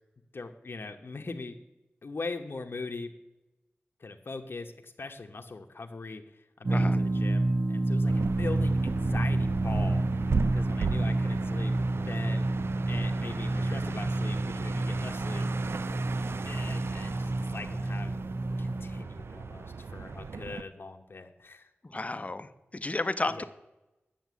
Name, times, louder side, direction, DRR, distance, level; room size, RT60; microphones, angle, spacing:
voice 1, 0.3-1.6 2.0-3.1 4.0-10.1 10.5-12.5 12.9-15.4 16.4-18.2 18.6-21.7 23.3-23.4, left 3 dB, 60° left, 4 dB, 0.9 m, -41 dB
sound 1, 6.6-19.0, right 2 dB, 45° right, 0.7 m, -29 dB
voice 2, 6.7-7.0 21.9-23.4, left 2 dB, 35° left, 11 dB, 0.7 m, -32 dB
sound 2, 8.1-20.6, right 4 dB, 75° right, 0.3 m, -36 dB
9.2 x 7.2 x 8.3 m, 1.0 s
wide cardioid pair, 85°, 4 cm